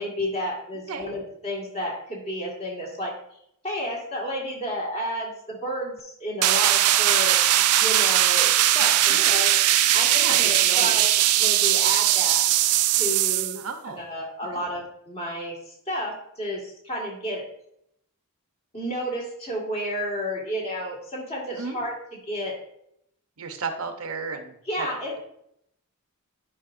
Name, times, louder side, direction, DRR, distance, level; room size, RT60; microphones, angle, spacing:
voice 1, 0.0-3.1 3.6-7.4 7.8-12.4 12.9-17.5 18.7-22.6 24.7-25.1, equal, 30° left, -2 dB, 1.8 m, -31 dB
sound 1, 6.4-13.6, right 13 dB, 90° right, 0.4 m, -20 dB
voice 2, 8.9-9.3 10.2-11.0 13.6-14.0 21.6-21.8 23.4-24.9, right 5 dB, 75° right, 6 dB, 0.9 m, -33 dB
9.8 x 5.1 x 2.6 m, 0.74 s
head